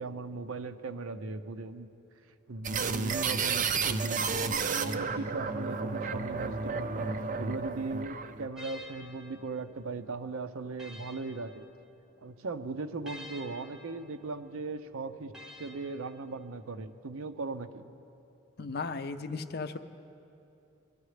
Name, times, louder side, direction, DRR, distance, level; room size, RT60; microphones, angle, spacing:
voice 1, 0.0-1.9 2.5-11.7 12.2-17.8, right 3 dB, 80° right, 10 dB, 0.6 m, -38 dB
sound 1, 2.6-8.5, right 4 dB, 35° right, 0.4 m, -32 dB
sound 2, 8.5-12.3 13.0-16.7, left 1 dB, 5° right, 0.8 m, -51 dB
Bowed string instrument, 10.1-10.3, left 4 dB, 80° left, 0.7 m, -57 dB
voice 2, 18.6-19.8, left 4 dB, 50° left, 9 dB, 0.5 m, -36 dB
22.5 x 12.5 x 3.3 m, 2.7 s
head